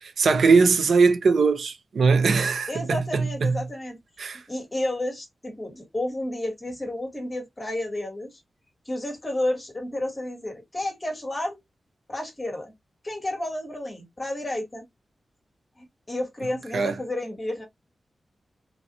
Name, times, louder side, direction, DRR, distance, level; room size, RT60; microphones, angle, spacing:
voice 1, 0.0-3.6 4.2-4.4 16.7-17.0, right 4 dB, 75° right, 0.5 m, -21 dB
voice 2, 2.7-4.0 4.5-8.3 8.8-11.6 12.1-12.7 13.0-14.9 15.8-17.6, left 1 dB, 20° left, 1.4 m, -31 dB
3.0 x 2.6 x 2.8 m
wide cardioid pair, 170°, 0 cm